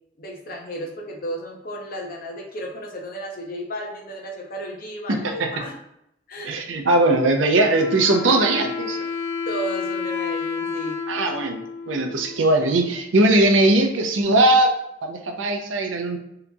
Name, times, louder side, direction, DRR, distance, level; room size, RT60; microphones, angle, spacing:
voice 1, 0.2-5.7 6.3-6.6 9.5-11.0, right 1 dB, 50° left, 0 dB, 0.7 m, -33 dB
voice 2, 5.1-5.5 6.4-9.1 11.1-14.7 15.0-16.2, right 2 dB, 90° right, 4 dB, 0.5 m, -20 dB
Wind instrument woodwind instrument, 7.6-13.1, left 5 dB, 85° left, 0.3 m, -30 dB
3.8 x 2.9 x 2.3 m, 0.79 s
head